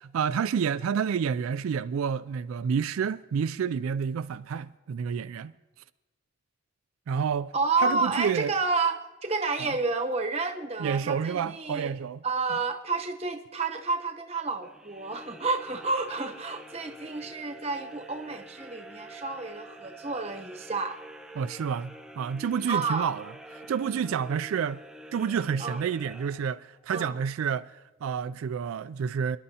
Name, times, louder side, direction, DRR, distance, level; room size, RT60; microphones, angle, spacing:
voice 1, 0.0-5.5 7.1-7.5 7.8-8.5 9.6-9.7 10.8-12.2 21.4-23.3 23.7-24.8 25.1-29.4, right 7 dB, 90° right, 0.3 m, -29 dB
voice 2, 7.5-11.9 12.2-21.0 22.7-23.1 25.6-25.8 26.9-27.2, right 3 dB, 30° right, 0.9 m, -30 dB
sound 1, 14.6-26.9, right 1 dB, 5° right, 0.5 m, -47 dB
28.0 x 10.5 x 2.8 m
head